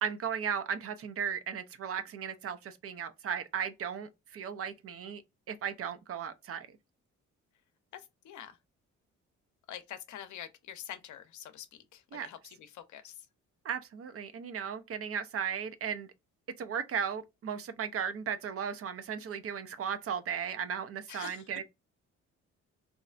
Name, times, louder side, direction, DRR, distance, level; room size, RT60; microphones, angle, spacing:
voice 1, 0.0-5.2 5.5-6.7 12.1-12.3 13.6-16.1 16.6-21.6, right 7 dB, 50° right, 0.5 m, -36 dB
voice 2, 7.9-8.6 9.7-13.1 21.1-21.4, left 10 dB, 75° left, 0.6 m, -46 dB
3.1 x 2.6 x 2.4 m
cardioid pair, 90°, 30 cm